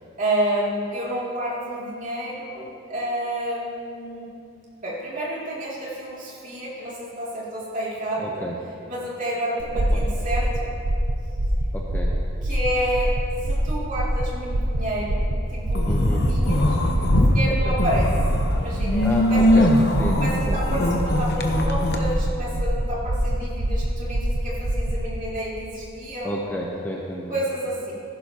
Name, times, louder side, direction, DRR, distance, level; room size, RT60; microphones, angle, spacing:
voice 1, 0.2-4.3 4.8-8.4 8.9-10.7 11.2-11.4 12.4-13.1 13.5-16.8 17.1-18.1 18.6-19.7 20.2-26.3 27.3-27.9, right 1 dB, 35° right, -6 dB, 2.6 m, -29 dB
voice 2, 8.2-8.6 9.9-10.0 11.7-12.1 15.9-16.2 17.5-17.8 19.0-19.7 20.0-20.6 26.2-27.3, equal, 10° left, -3 dB, 0.7 m, -30 dB
sound 1, 9.6-25.0, right 1 dB, 80° right, 0.8 m, -25 dB
sound 2, 15.7-17.3 17.7-22.0, left 1 dB, 50° left, 0.9 m, -21 dB
14.5 x 12.0 x 2.9 m, 2.6 s
head